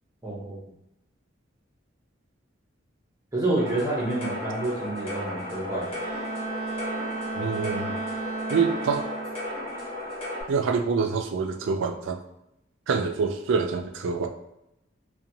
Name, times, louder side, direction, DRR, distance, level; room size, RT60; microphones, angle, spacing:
voice 1, 0.2-0.7 3.3-5.9, right 2 dB, 15° right, -6 dB, 0.7 m, -28 dB
sound 1, 3.6-10.4, left 1 dB, 30° left, 0.9 m, -35 dB
Bowed string instrument, 5.6-9.7, right 4 dB, 80° left, 0.9 m, -34 dB
voice 2, 7.4-8.0 8.5-9.1 10.5-12.2 12.9-14.3, right 5 dB, 70° right, 5 dB, 0.3 m, -26 dB
2.6 x 2.2 x 2.7 m, 0.84 s
head